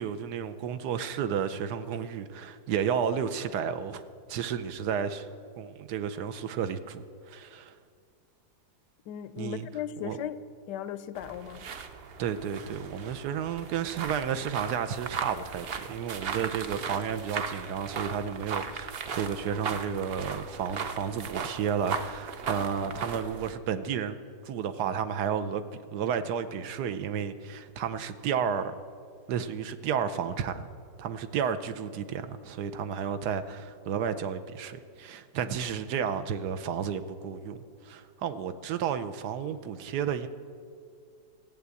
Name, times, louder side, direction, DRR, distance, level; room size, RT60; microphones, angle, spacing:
voice 1, 0.0-4.0 4.3-5.3 5.6-7.7 9.4-9.7 10.0-10.2 12.2-24.2 24.4-28.7 29.3-30.7 31.0-40.3, right 7 dB, 75° right, 1.3 m, -32 dB
voice 2, 9.1-10.4 10.7-11.7 35.4-35.5, left 10 dB, 85° left, 1.2 m, -37 dB
sound 1, 11.2-23.5, right 6 dB, 55° right, 0.7 m, -37 dB
15.0 x 8.6 x 8.3 m
omnidirectional pair, 1.8 m